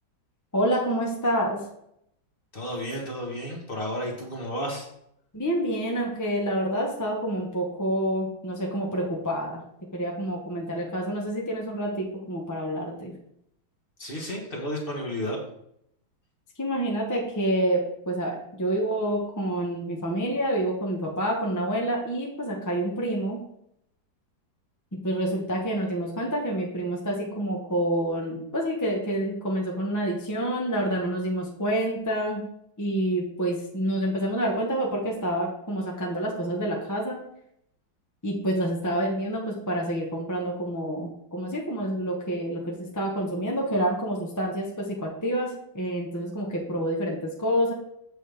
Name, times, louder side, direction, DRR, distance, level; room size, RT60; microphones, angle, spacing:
voice 1, 0.5-1.6 5.3-9.6 9.9-13.1 16.6-23.4 25.0-32.4 32.8-37.2 38.2-47.7, right 1 dB, 15° left, -1 dB, 0.8 m, -28 dB
voice 2, 2.5-4.9 14.0-15.4, equal, 30° left, 0 dB, 1.3 m, -32 dB
7.5 x 6.2 x 3.4 m, 0.74 s
omnidirectional pair, 2.1 m